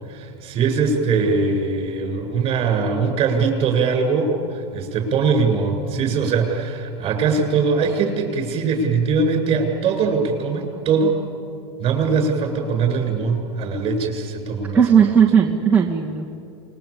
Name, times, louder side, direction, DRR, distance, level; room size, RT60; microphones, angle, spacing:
voice 1, 0.1-11.2 11.8-14.8, right 4 dB, 35° right, 4 dB, 7.5 m, -21 dB
voice 2, 14.7-16.3, right 7 dB, 10° right, -4 dB, 2.3 m, -16 dB
29.0 x 22.0 x 8.7 m, 2.6 s
hypercardioid pair, 120°, 15 cm